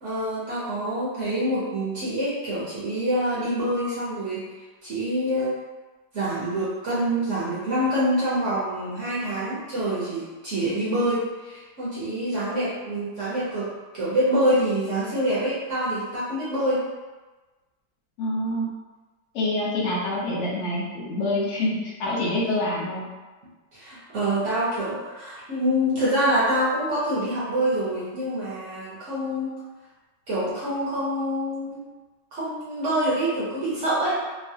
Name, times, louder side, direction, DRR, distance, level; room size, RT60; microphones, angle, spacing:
voice 1, 0.0-4.5 4.8-5.6 6.1-16.8 23.7-29.5 30.3-31.9 32.3-34.2, right 1 dB, 55° right, -9 dB, 0.8 m, -26 dB
voice 2, 18.2-18.7 19.3-23.1, left 1 dB, 60° left, -5 dB, 0.8 m, -26 dB
3.1 x 2.2 x 2.7 m, 1.2 s
omnidirectional pair, 2.0 m